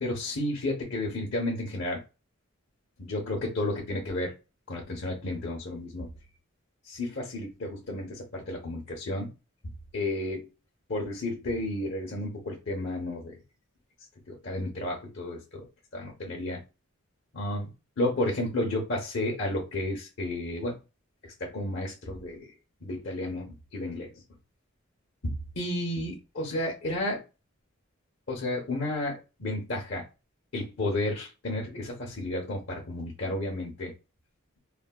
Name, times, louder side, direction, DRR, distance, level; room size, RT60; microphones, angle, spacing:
voice 1, 0.0-2.0 3.0-4.3 4.7-6.1 6.9-9.3 9.9-10.5 10.9-13.3 14.3-15.6 15.9-16.6 17.3-17.7 18.0-20.7 21.4-22.4 22.8-24.1 25.2-27.2 28.3-30.0 30.5-33.9, left 1 dB, 60° left, -1 dB, 0.8 m, -32 dB
3.3 x 2.1 x 2.2 m, 0.29 s
head